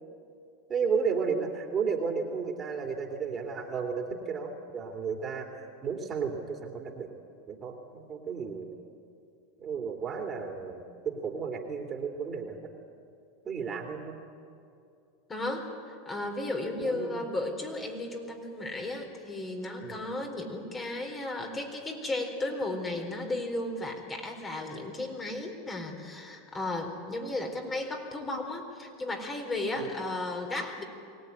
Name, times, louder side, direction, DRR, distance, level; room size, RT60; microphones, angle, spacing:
voice 1, 0.7-7.1 7.5-8.8 9.6-12.6 13.4-14.2 16.8-17.2 19.8-20.0 29.8-29.9, right 5 dB, 30° right, 2 dB, 3.2 m, -33 dB
voice 2, 15.3-30.8, left 2 dB, 20° left, 3 dB, 4.2 m, -34 dB
23.5 x 17.5 x 9.9 m, 2.5 s
hypercardioid pair, 115°, 0 cm